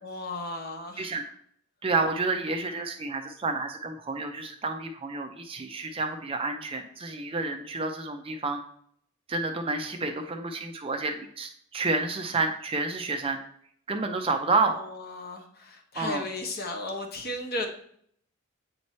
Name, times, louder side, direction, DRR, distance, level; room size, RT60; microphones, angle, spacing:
voice 1, 0.0-1.1 9.9-10.4 14.7-17.7, left 2 dB, 45° left, 3 dB, 0.9 m, -35 dB
voice 2, 1.8-8.6 9.3-13.4 13.9-14.8 16.0-16.2, right 3 dB, 25° right, 5 dB, 0.5 m, -29 dB
8.2 x 3.1 x 4.2 m, 0.64 s
head